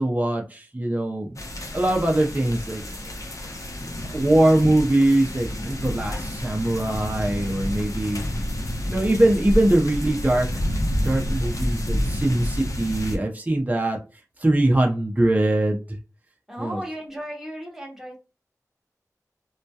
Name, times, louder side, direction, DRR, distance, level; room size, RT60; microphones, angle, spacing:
voice 1, 0.0-1.4 1.7-3.1 4.1-8.3 8.9-10.5 11.0-14.0 14.4-16.0 16.6-16.8, right 1 dB, 25° right, 1 dB, 0.5 m, -22 dB
sound 1, 1.4-13.2, equal, 60° left, 0.7 m, -29 dB
voice 2, 16.5-18.2, equal, 5° right, -1 dB, 0.9 m, -35 dB
2.2 x 2.1 x 2.7 m, 0.31 s
wide cardioid pair, 45°, 6 cm